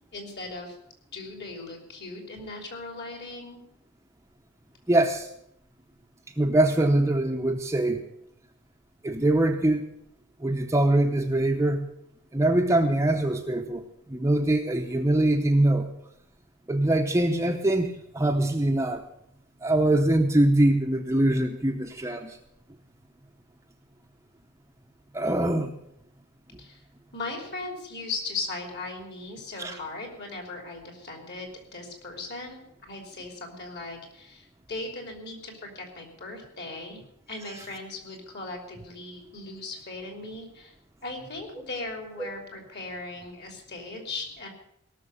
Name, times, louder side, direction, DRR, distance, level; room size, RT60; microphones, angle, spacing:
voice 1, 0.1-0.8 1.1-3.6 26.6-26.8 27.1-37.0 37.3-40.7 41.0-44.5, left 3 dB, 50° left, 3 dB, 3.2 m, -38 dB
voice 2, 4.9-5.3 6.4-8.0 9.0-9.8 10.4-11.9 12.3-15.9 16.7-19.0 19.6-22.4 25.1-25.7 29.6-29.7 42.2-42.3, right 1 dB, 15° right, 4 dB, 0.8 m, -23 dB
17.5 x 6.6 x 8.0 m, 0.74 s
head